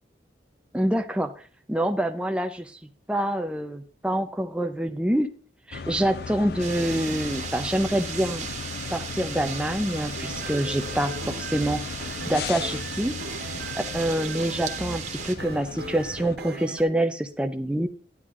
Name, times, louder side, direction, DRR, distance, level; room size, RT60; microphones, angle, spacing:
voice 1, 0.7-1.3 1.7-2.8 3.1-5.3 5.7-8.5 8.9-13.1 13.9-17.9, right 1 dB, 5° right, 5 dB, 0.5 m, -26 dB
sound 1, 5.7-16.4, left 5 dB, 55° left, 0.4 m, -37 dB
sound 2, 6.6-15.3, right 7 dB, 40° right, 1.4 m, -37 dB
sound 3, 10.1-16.8, right 2 dB, 65° right, 1.4 m, -39 dB
11.0 x 9.6 x 3.6 m, 0.41 s
head